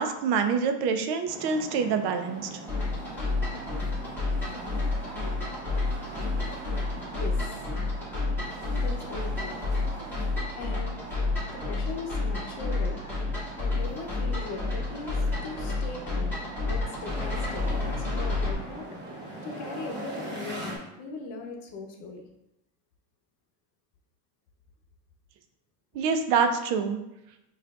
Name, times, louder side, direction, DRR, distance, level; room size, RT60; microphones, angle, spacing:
voice 1, 0.0-2.5 25.9-27.0, right 5 dB, 60° right, 7 dB, 0.5 m, -26 dB
sound 1, 1.3-20.8, right 1 dB, 25° right, 0.9 m, -41 dB
sound 2, 2.7-18.5, left 3 dB, 5° left, 1.4 m, -30 dB
voice 2, 7.0-7.7 8.7-9.6 10.5-11.1 11.5-13.0 13.6-19.0 19.4-22.2, left 3 dB, 75° left, 2 dB, 0.9 m, -40 dB
5.8 x 2.5 x 2.3 m, 0.88 s
cardioid pair, 150°, 44 cm